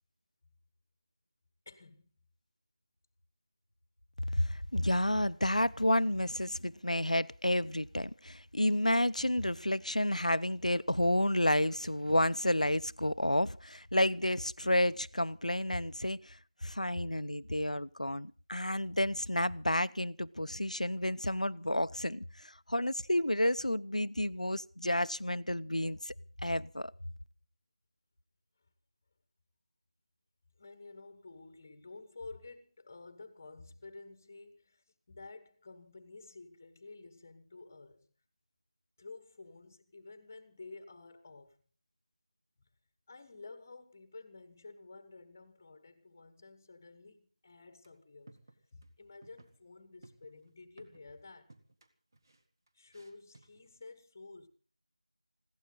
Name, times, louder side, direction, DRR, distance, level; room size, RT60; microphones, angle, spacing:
voice 1, 1.6-2.1 30.6-38.1 39.0-41.6 42.6-42.7 43.1-48.4 48.7-51.5 52.7-54.5, left 3 dB, 20° left, 1.4 m, -51 dB
voice 2, 4.3-26.1 26.4-26.9, left 1 dB, 80° left, 0.8 m, -30 dB
sound 1, 47.8-48.0 48.3-48.9 49.2-49.6 50.0-51.2 51.5-53.9, right 2 dB, 35° right, 2.0 m, -60 dB
21.0 x 16.5 x 4.0 m
figure-of-eight pair, 170°, 4 cm